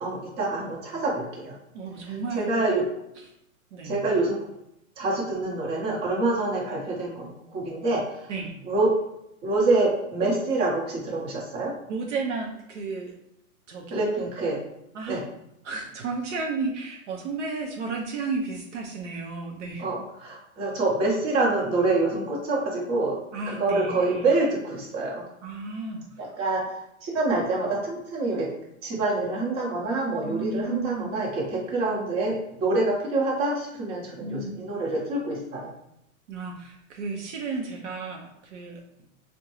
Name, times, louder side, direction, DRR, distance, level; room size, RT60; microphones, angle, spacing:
voice 1, 0.0-1.6 2.0-2.9 3.8-4.4 5.0-8.3 8.6-9.0 9.4-11.8 13.9-14.6 15.1-15.2 19.8-23.2 23.5-25.2 26.2-28.5 28.8-35.7, right 2 dB, 25° right, -3 dB, 0.9 m, -26 dB
voice 2, 1.7-2.5 3.7-4.0 8.3-8.6 11.9-13.1 13.7-14.0 14.9-15.2 15.6-19.8 23.3-24.2 25.4-26.0 30.2-31.1 34.2-34.5 36.3-38.8, right 3 dB, 60° right, 1 dB, 0.6 m, -33 dB
3.5 x 2.2 x 3.0 m, 0.79 s
hypercardioid pair, 145°, 41 cm